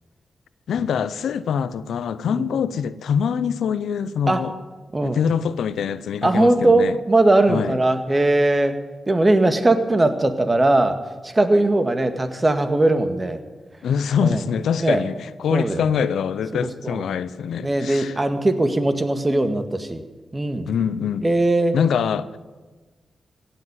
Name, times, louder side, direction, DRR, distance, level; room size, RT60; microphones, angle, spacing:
voice 1, 0.7-4.5 5.0-7.0 7.5-7.7 13.8-15.1 15.4-18.2 20.7-21.2 21.7-22.4, left 7 dB, 80° left, 0.5 m, -24 dB
voice 2, 6.2-8.8 9.1-11.0 11.2-13.4 14.2-14.4 14.8-15.0 15.5-15.8 16.5-17.1 17.6-20.0 20.3-20.7 21.2-21.8, right 2 dB, 30° right, 1.9 m, -19 dB
16.5 x 7.8 x 9.6 m
supercardioid pair, 40°, 0 cm